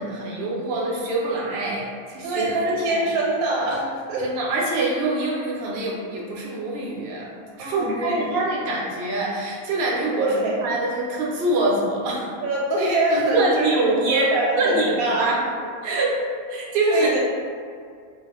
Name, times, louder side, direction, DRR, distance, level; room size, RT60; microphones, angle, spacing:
voice 1, 0.0-2.5 2.9-3.0 4.2-7.3 7.6-12.3 13.3-14.3 14.6-15.4 15.8-16.1 16.5-17.2, right 2 dB, 65° right, -3 dB, 0.6 m, -24 dB
voice 2, 2.2-4.2 7.6-8.3 10.2-10.6 12.4-13.7 14.1-15.3 15.8-16.2 16.9-17.2, right 2 dB, 90° right, -4 dB, 1.1 m, -24 dB
2.3 x 2.1 x 2.9 m, 2.1 s
omnidirectional pair, 1.5 m